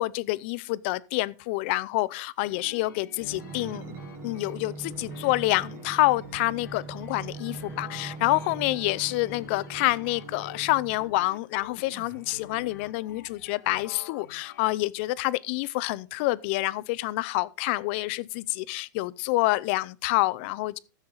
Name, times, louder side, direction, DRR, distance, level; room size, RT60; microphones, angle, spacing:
voice 1, 0.0-3.9 4.2-20.8, left 19 dB, 35° left, 0.5 m, -27 dB
sound 1, 2.4-14.6, left 8 dB, 90° left, 0.8 m, -48 dB
sound 2, 3.2-11.2 11.8-13.1 13.7-13.8, right 5 dB, 25° right, 1.1 m, -42 dB
14.5 x 7.3 x 3.9 m
supercardioid pair, 165°, 10 cm